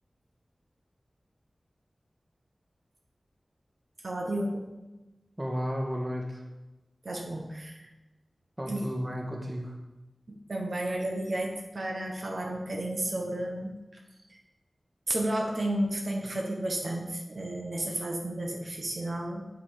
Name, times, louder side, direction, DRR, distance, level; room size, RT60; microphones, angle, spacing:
voice 1, 4.0-4.7 7.0-7.9 8.7-8.9 10.3-14.0 14.3-14.4 15.1-19.5, right 1 dB, 70° right, 0 dB, 1.5 m, -32 dB
voice 2, 5.4-6.4 8.6-9.8, equal, 30° right, 0 dB, 1.7 m, -33 dB
7.9 x 7.5 x 5.1 m, 1.1 s
wide cardioid pair, 75°, 0 cm